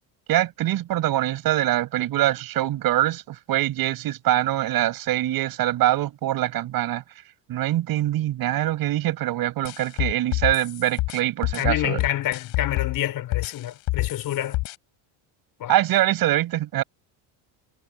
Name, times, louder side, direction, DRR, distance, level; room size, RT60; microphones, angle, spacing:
voice 1, 0.3-7.0 7.5-12.0 15.7-16.8, right 14 dB, 45° right, 6.7 m, -24 dB
sound 1, 9.6-13.0 13.3-14.7, left 21 dB, 70° left, 6.1 m, -27 dB
voice 2, 11.6-14.6 15.6-15.8, left 12 dB, 45° left, 5.6 m, -28 dB
cardioid pair, 175°, 48 cm